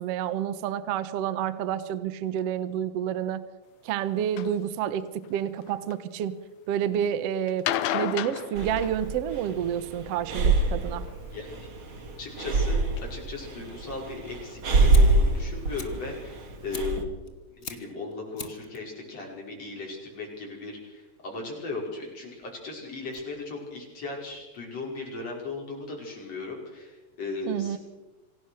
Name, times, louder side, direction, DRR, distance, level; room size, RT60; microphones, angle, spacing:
voice 1, 0.0-3.4 3.8-6.4 6.7-7.6 7.9-11.1 27.5-27.8, right 9 dB, 65° right, 14 dB, 1.8 m, -29 dB
sound 1, 4.4-4.5 5.2-5.9 7.5-9.5 11.0-11.6 12.3-12.4 13.0-13.1 13.4-13.5 13.7-13.8, left 11 dB, 70° left, 2.0 m, -32 dB
Breathing, 8.5-17.0, right 2 dB, 45° right, 2.9 m, -26 dB
voice 2, 12.2-12.8 13.1-17.1 17.5-27.8, left 3 dB, 55° left, -1 dB, 6.6 m, -37 dB
Fire, 14.9-24.9, left 4 dB, 35° left, 1.2 m, -47 dB
27.0 x 17.5 x 6.5 m, 1.1 s
omnidirectional pair, 3.5 m